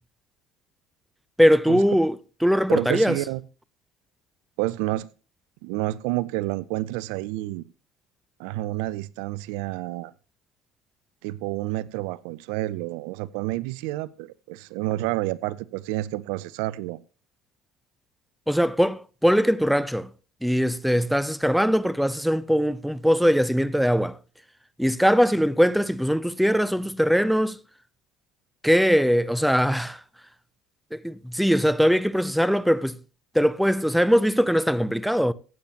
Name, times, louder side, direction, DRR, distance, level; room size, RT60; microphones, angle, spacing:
voice 1, 1.4-2.2 2.4-3.2 18.5-20.1 20.4-24.2 24.8-27.6 28.6-30.0 30.9-33.0 33.3-35.3, equal, ahead, 0.6 m, -21 dB
voice 2, 2.7-3.4 4.6-5.1 5.6-7.6 8.4-10.1 11.2-17.0, right 17 dB, 75° right, 0.5 m, -29 dB
15.5 x 8.6 x 2.9 m
supercardioid pair, 80°, 0 cm